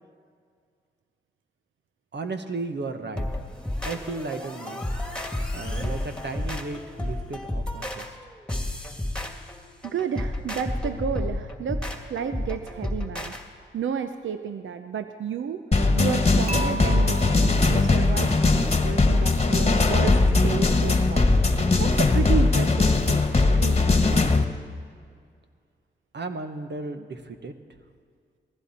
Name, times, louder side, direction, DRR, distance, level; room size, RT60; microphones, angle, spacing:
voice 1, 2.1-3.3 3.8-4.9 5.5-8.2 26.1-27.5, right 3 dB, 60° right, 7 dB, 1.3 m, -34 dB
sound 1, 3.2-13.4, left 1 dB, 5° left, 2.3 m, -31 dB
voice 2, 9.8-13.3 13.7-15.7 15.9-21.3 21.8-24.3, right 7 dB, 75° right, 9 dB, 0.6 m, -32 dB
sound 2, 15.7-24.4, left 3 dB, 30° left, 1.4 m, -20 dB
Dishes pots and pans / Chink clink, 16.5-18.6, right 2 dB, 30° right, 0.9 m, -36 dB
19.0 x 15.0 x 4.3 m, 2.1 s
cardioid pair, 45°, 20 cm